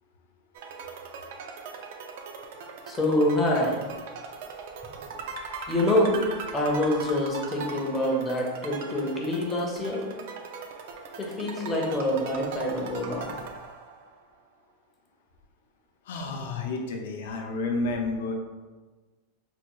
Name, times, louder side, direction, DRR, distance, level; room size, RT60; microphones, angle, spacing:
sound 1, 0.5-14.2, right 5 dB, 55° right, 0.4 m, -40 dB
voice 1, 2.9-3.9 5.7-6.1 6.5-10.0 11.2-13.3, left 1 dB, 10° left, -2 dB, 0.5 m, -26 dB
voice 2, 16.1-18.3, left 3 dB, 70° left, 2 dB, 0.5 m, -30 dB
3.3 x 2.2 x 3.0 m, 1.3 s
supercardioid pair, 170°, 0 cm